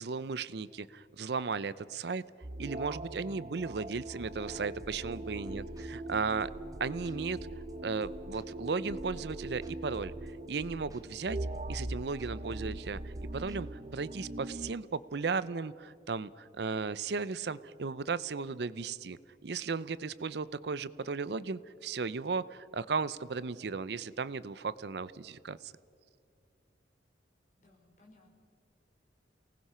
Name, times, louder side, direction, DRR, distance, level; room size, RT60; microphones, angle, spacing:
voice 1, 0.0-2.2 2.6-5.6 5.9-6.5 6.8-7.4 7.8-11.4 11.7-25.7, right 4 dB, 70° right, 17 dB, 0.5 m, -35 dB
sound 1, 2.4-14.7, right 1 dB, 35° right, 0.8 m, -41 dB
sound 2, 4.3-13.6, equal, 20° right, 1.2 m, -49 dB
voice 2, 5.4-6.0 27.6-28.4, left 2 dB, 45° left, -1 dB, 5.1 m, -60 dB
29.0 x 19.0 x 5.6 m, 2.4 s
head